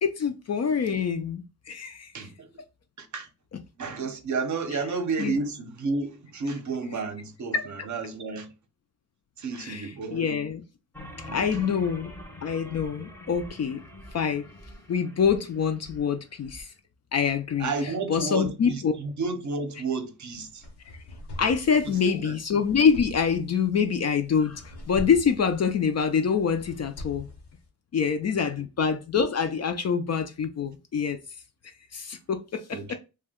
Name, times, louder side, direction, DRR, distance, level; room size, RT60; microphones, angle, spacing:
voice 1, 0.0-2.1 5.2-5.3 7.5-7.6 9.6-10.6 11.3-12.1 12.4-13.8 14.1-14.4 14.9-16.7 17.1-17.7 18.1-18.9 21.4-27.3 27.9-31.2 31.9-33.0, left 6 dB, 40° left, 0.4 m, -25 dB
voice 2, 2.1-2.5 3.0-3.3 3.8-8.5 9.4-10.4 11.3-11.5 17.6-20.7 21.8-22.4 32.7-33.0, right 4 dB, 45° right, 0.7 m, -32 dB
sound 1, 10.9-16.6, left 1 dB, 5° left, 0.7 m, -45 dB
sound 2, 20.3-27.7, left 1 dB, 70° left, 0.9 m, -43 dB
2.6 x 2.2 x 3.5 m
cardioid pair, 90°, 41 cm